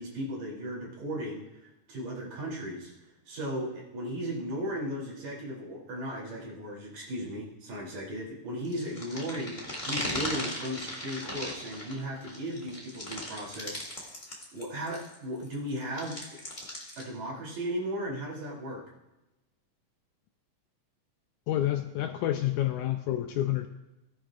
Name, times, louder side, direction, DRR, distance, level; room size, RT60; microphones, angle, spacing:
voice 1, 0.0-2.9 3.3-14.1 14.5-16.4 17.0-18.9, equal, 60° right, -4 dB, 4.3 m, -36 dB
sound 1, 8.6-15.1 15.4-17.0, left 1 dB, 15° left, 1.6 m, -38 dB
voice 2, 21.5-23.7, left 13 dB, 80° left, 6 dB, 1.8 m, -28 dB
18.0 x 10.5 x 2.4 m, 0.96 s
omnidirectional pair, 3.8 m